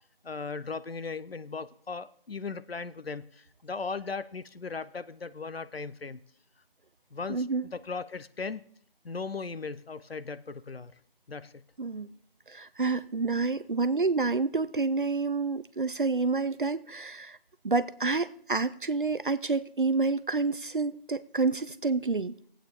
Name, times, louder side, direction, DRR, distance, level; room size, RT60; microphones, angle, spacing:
voice 1, 0.2-6.2 7.1-7.5 7.7-8.6 9.0-10.9 11.3-11.6, left 4 dB, 90° left, 15 dB, 0.8 m, -37 dB
voice 2, 7.3-7.6 11.8-12.1 12.5-17.4 17.6-22.4, right 3 dB, 60° right, 15 dB, 0.5 m, -28 dB
17.5 x 8.6 x 3.6 m, 0.64 s
figure-of-eight pair, 175°, 29 cm